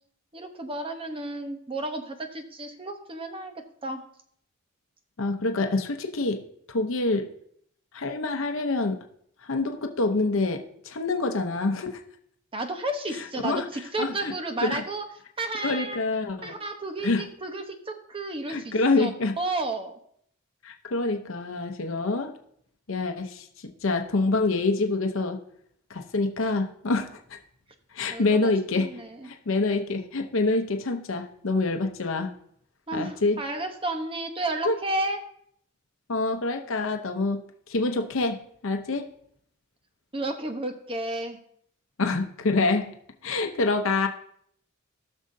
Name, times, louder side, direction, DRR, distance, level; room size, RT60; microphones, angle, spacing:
voice 1, 0.3-3.5 3.8-4.0 12.5-15.0 15.4-16.0 16.4-19.1 19.4-20.0 28.1-29.3 32.9-35.2 40.1-41.4, right 2 dB, 25° right, 6 dB, 1.0 m, -32 dB
voice 2, 5.2-6.4 6.7-7.3 7.9-9.0 9.5-12.0 13.4-13.6 14.0-14.3 14.6-14.8 15.6-16.5 17.0-17.2 18.5-19.3 20.6-22.3 22.9-25.4 25.9-27.2 27.9-29.0 29.2-32.3 32.9-33.4 34.6-34.8 36.1-39.0 42.0-42.9 43.2-44.1, left 3 dB, 70° left, 5 dB, 0.8 m, -26 dB
17.5 x 6.4 x 2.7 m, 0.68 s
head